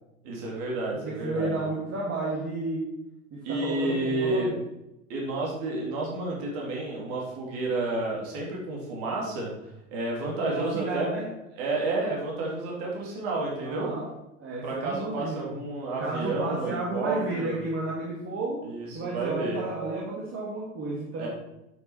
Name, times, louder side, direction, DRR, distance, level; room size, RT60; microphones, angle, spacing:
voice 1, 0.2-1.6 3.4-4.5 5.1-9.5 9.9-11.1 11.5-13.9 14.6-17.6 18.6-19.6 21.2-21.3, right 2 dB, 60° right, -3 dB, 3.3 m, -30 dB
voice 2, 1.0-2.9 3.5-4.6 10.4-11.3 13.6-14.1 14.4-15.6 16.0-18.6 18.9-21.3, right 2 dB, 35° right, -4 dB, 2.4 m, -32 dB
9.3 x 6.2 x 4.5 m, 0.92 s
hypercardioid pair, 95°, 39 cm